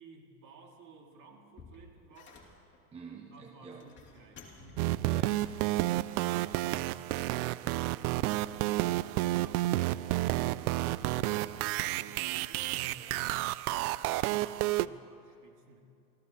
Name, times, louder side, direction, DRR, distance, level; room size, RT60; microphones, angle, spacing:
voice 1, 0.0-2.4 3.3-5.3 7.5-12.9 14.0-15.8, right 3 dB, 40° right, 1 dB, 2.3 m, -56 dB
sound 1, 1.2-2.8 3.6-5.0 5.4-7.2 8.2-9.0 9.3-10.9 11.2-11.5 12.7-13.5 13.9-14.4, left 4 dB, 25° left, 2.5 m, -57 dB
voice 2, 2.9-3.9 5.0-5.3 12.9-14.0, right 5 dB, 15° right, 2 dB, 0.8 m, -49 dB
sound 2, 4.8-14.9, right 16 dB, 70° right, 0.5 m, -31 dB
26.5 x 14.5 x 2.9 m, 2.6 s
supercardioid pair, 125°, 45 cm